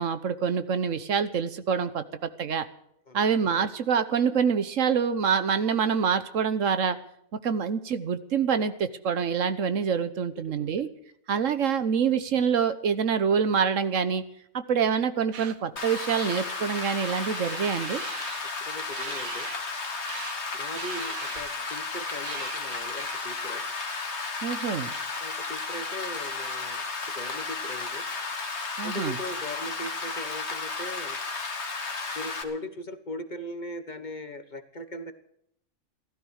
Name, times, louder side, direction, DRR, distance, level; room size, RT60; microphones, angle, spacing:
voice 1, 0.0-2.7 3.1-7.0 7.4-10.9 11.3-14.2 14.5-18.0 24.4-24.9 28.8-29.2, right 6 dB, 70° right, 12 dB, 1.3 m, -26 dB
voice 2, 10.3-10.7 18.6-19.5 20.5-23.6 25.2-26.8 27.1-28.1 28.8-31.2 32.1-35.1, left 1 dB, 35° left, 10 dB, 1.3 m, -39 dB
sound 1, 15.3-15.5 16.1-18.4 18.9-19.6 20.0-20.4 20.7-21.6 22.2-23.1, right 8 dB, 85° right, 1.5 m, -41 dB
Rain, 15.8-32.4, left 4 dB, 50° left, 2.0 m, -33 dB
15.5 x 13.0 x 6.5 m, 0.71 s
omnidirectional pair, 1.4 m